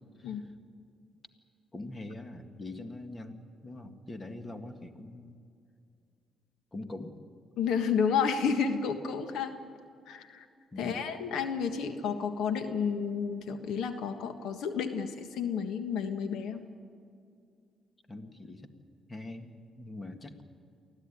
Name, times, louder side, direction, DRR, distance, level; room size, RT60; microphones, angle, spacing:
voice 1, 1.7-5.4 6.7-7.1 10.7-11.0 18.1-18.7 19.1-20.4, left 2 dB, 25° left, 7 dB, 2.0 m, -43 dB
voice 2, 7.6-9.5 10.1-10.4 10.8-16.6, left 6 dB, 80° left, 8 dB, 1.5 m, -31 dB
24.0 x 15.5 x 9.9 m, 2.4 s
cardioid pair, 90°, 0 cm